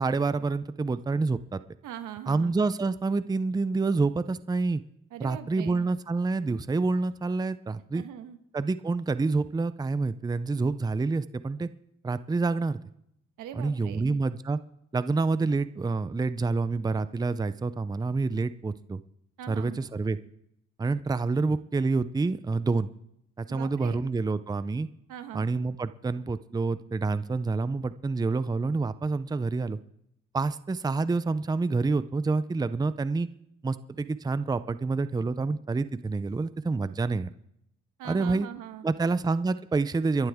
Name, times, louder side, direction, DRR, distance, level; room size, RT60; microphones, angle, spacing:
voice 1, 0.0-1.6 2.3-4.8 5.2-8.0 8.5-11.7 12.0-12.8 13.5-14.6 14.9-19.0 19.5-20.2 20.8-22.9 23.4-24.9 25.3-29.8 30.3-33.3 33.6-37.3 38.0-38.5 38.8-40.3, right 3 dB, 15° right, 14 dB, 0.5 m, -27 dB
voice 2, 1.8-2.5 5.1-5.9 7.9-8.4 13.4-14.2 19.4-19.8 23.5-24.0 25.1-25.5 38.0-38.8, right 10 dB, 90° right, 8 dB, 1.4 m, -41 dB
28.5 x 11.5 x 3.6 m, 0.77 s
cardioid pair, 90°, 30 cm